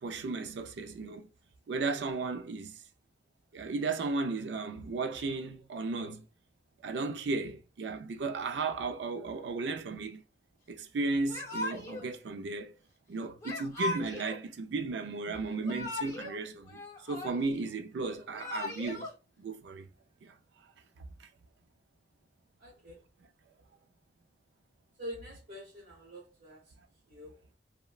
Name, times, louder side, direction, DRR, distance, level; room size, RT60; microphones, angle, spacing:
voice 1, 0.0-1.3 1.7-2.8 3.5-6.3 6.8-10.2 10.7-12.7 13.1-16.8 17.1-19.1 19.4-19.9 20.2-20.3, right 3 dB, 80° right, 0.4 m, -35 dB
Yell / Crying sobbing, 11.3-12.1 13.4-14.4 15.5-16.4 16.7-17.6 18.2-19.1, left 2 dB, 20° left, 0.6 m, -38 dB
voice 2, 22.6-23.0 25.0-26.6 27.1-27.3, equal, 60° right, 1.0 m, -45 dB
3.0 x 2.1 x 2.3 m
head